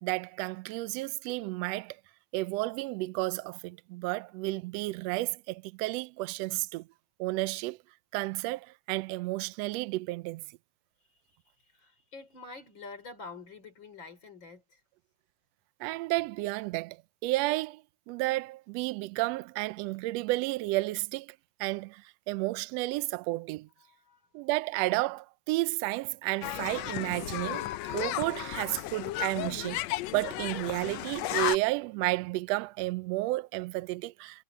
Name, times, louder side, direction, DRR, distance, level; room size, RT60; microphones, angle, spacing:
voice 1, 0.0-2.0 2.3-6.9 7.2-7.8 8.1-10.4 15.8-17.0 17.2-21.3 21.6-23.7 24.3-29.8 30.1-34.4, right 20 dB, 80° right, 1.5 m, -32 dB
voice 2, 11.7-14.8 23.8-24.2, left 3 dB, 40° left, 4.5 m, -47 dB
sound 1, 26.4-31.6, left 15 dB, 75° left, 1.7 m, -34 dB
omnidirectional pair, 3.4 m